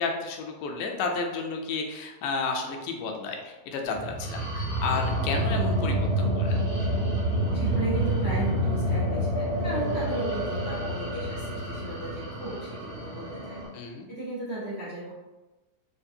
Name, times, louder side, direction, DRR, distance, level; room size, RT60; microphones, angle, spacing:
voice 1, 0.0-6.6 13.7-14.1, left 4 dB, 85° left, 2 dB, 2.1 m, -32 dB
sound 1, 3.9-13.7, right 1 dB, 60° left, 0.6 m, -28 dB
voice 2, 7.5-15.1, right 2 dB, 80° right, -11 dB, 0.6 m, -35 dB
5.1 x 2.4 x 2.6 m, 1.1 s
omnidirectional pair, 3.8 m